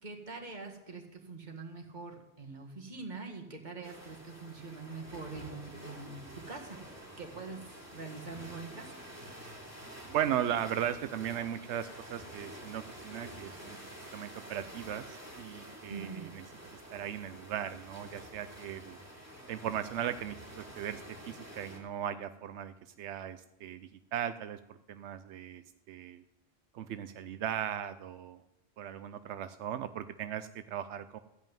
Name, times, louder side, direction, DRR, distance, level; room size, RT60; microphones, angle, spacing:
voice 1, 0.0-6.8 7.2-7.6 7.9-8.9 15.9-16.3, right 4 dB, 40° right, 2 dB, 2.0 m, -44 dB
sound 1, 3.8-21.8, equal, 15° right, 2.9 m, -49 dB
voice 2, 10.1-13.8 14.1-16.5 16.7-19.0 19.5-25.6 25.9-26.2 26.7-28.4 28.8-31.2, right 10 dB, 85° right, 11 dB, 0.9 m, -37 dB
15.0 x 5.4 x 9.0 m, 0.96 s
omnidirectional pair, 1.1 m